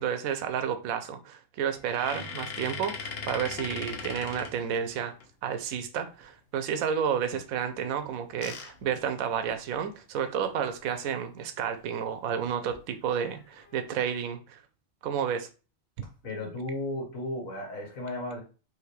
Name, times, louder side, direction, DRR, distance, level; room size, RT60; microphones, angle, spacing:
voice 1, 0.0-5.1 5.4-14.6 15.0-15.5, right 8 dB, 90° right, 1.0 m, -31 dB
sound 1, 1.8-5.2 7.9-9.9 10.4-10.5 10.7-10.9 12.4-12.8 13.4-13.9, left 5 dB, 55° left, 0.8 m, -40 dB
voice 2, 16.2-18.4, left 1 dB, 80° left, 1.9 m, -34 dB
5.0 x 2.8 x 3.2 m
omnidirectional pair, 1.4 m